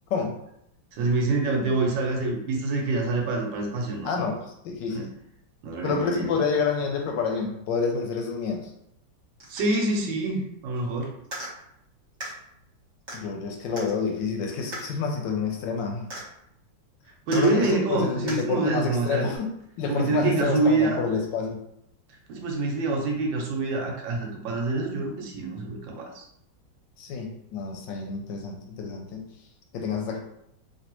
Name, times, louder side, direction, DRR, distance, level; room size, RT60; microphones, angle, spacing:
voice 1, 0.9-4.2 4.9-5.1 5.6-6.4 9.5-11.1 17.3-19.3 19.9-21.0 22.3-26.2, right 3 dB, 75° right, 1 dB, 1.4 m, -26 dB
voice 2, 4.0-4.4 4.6-5.0 5.8-8.7 13.1-16.1 17.3-19.5 19.8-21.6 27.0-29.2 29.7-30.2, left 5 dB, 75° left, 2 dB, 1.2 m, -28 dB
sound 1, 9.4-10.0 11.2-11.5 12.2-12.3 13.1-13.2 13.8-13.9 14.7-14.9 16.1-16.3 17.3-17.8 18.3-18.4 19.3-19.4, right 1 dB, 45° right, 1.2 m, -37 dB
3.2 x 2.6 x 2.9 m, 0.76 s
omnidirectional pair, 2.1 m